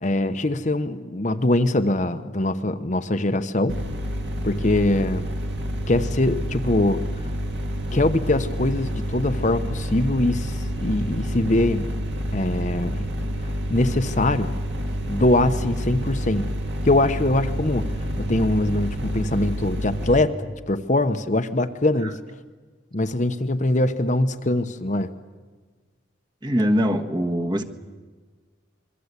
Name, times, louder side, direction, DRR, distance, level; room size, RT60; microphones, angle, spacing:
voice 1, 0.0-3.8 4.4-5.3 5.9-7.3 7.9-11.9 12.3-13.0 13.4-14.5 15.1-16.4 16.8-22.2 22.9-25.1, left 1 dB, 40° left, 9 dB, 1.0 m, -23 dB
sound 1, 3.7-20.2, equal, 55° right, 2.7 m, -28 dB
voice 2, 26.4-27.6, equal, 20° right, 4 dB, 1.4 m, -22 dB
26.5 x 22.5 x 8.3 m, 1.4 s
head